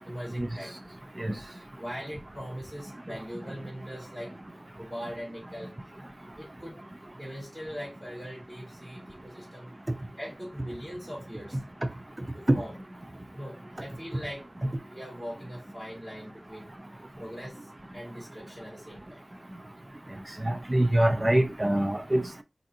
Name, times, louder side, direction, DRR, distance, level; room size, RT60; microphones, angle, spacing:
voice 1, 0.0-0.7 1.8-4.3 4.8-5.8 6.3-6.8 7.1-9.7 10.2-11.6 12.3-12.7 13.3-14.5 14.8-16.7 17.2-19.2, equal, 15° right, 1.5 m, -41 dB
voice 2, 20.4-22.4, right 1 dB, 30° right, 0.4 m, -24 dB
4.4 x 2.6 x 2.7 m
wide cardioid pair, 45°, 0 cm